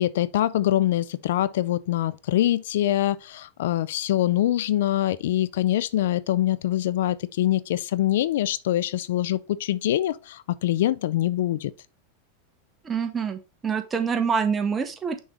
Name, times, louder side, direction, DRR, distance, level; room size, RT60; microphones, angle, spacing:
voice 1, 0.0-11.7, left 13 dB, 70° left, 0.4 m, -24 dB
voice 2, 12.8-15.2, right 6 dB, 20° right, 1.2 m, -26 dB
6.2 x 5.2 x 3.4 m
hypercardioid pair, 110°, 0 cm